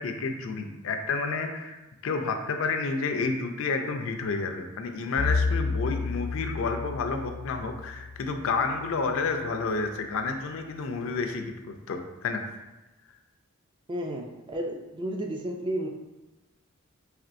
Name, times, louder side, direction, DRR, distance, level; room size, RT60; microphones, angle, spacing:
voice 1, 0.0-12.4, left 4 dB, 65° left, 5 dB, 0.4 m, -30 dB
Bowed string instrument, 5.2-9.4, left 4 dB, 55° right, 1.4 m, -31 dB
voice 2, 13.9-15.9, right 1 dB, 20° right, 1 dB, 0.3 m, -32 dB
4.2 x 3.0 x 2.5 m, 1.1 s
head